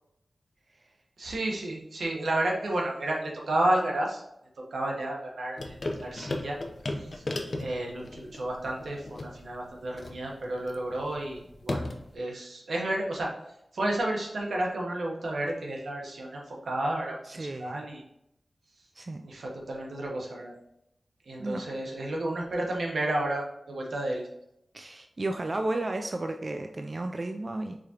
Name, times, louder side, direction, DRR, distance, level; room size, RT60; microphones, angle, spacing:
voice 1, 1.2-4.2 4.7-6.6 7.0-7.2 7.6-13.3 13.7-18.0 19.2-20.6 21.3-24.2, right 1 dB, 90° right, -1 dB, 1.1 m, -31 dB
sound 1, 5.6-12.1, left 2 dB, 55° left, 0.6 m, -37 dB
voice 2, 17.3-17.8 19.0-19.2 21.4-21.6 24.7-27.8, right 2 dB, 40° right, 5 dB, 0.3 m, -33 dB
4.9 x 3.6 x 2.9 m, 0.80 s
wide cardioid pair, 70°, 0 cm